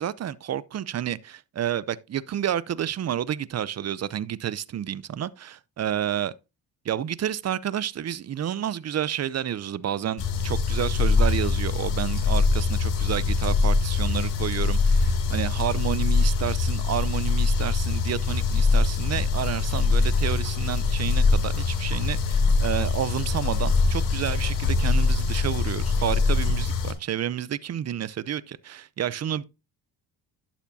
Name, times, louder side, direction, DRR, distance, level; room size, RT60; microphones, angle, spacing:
voice 1, 0.0-6.3 6.8-29.4, right 10 dB, 35° right, 0.6 m, -30 dB
sound 1, 10.2-26.9, left 4 dB, 80° left, 2.7 m, -23 dB
11.5 x 7.1 x 2.7 m
supercardioid pair, 70°, 44 cm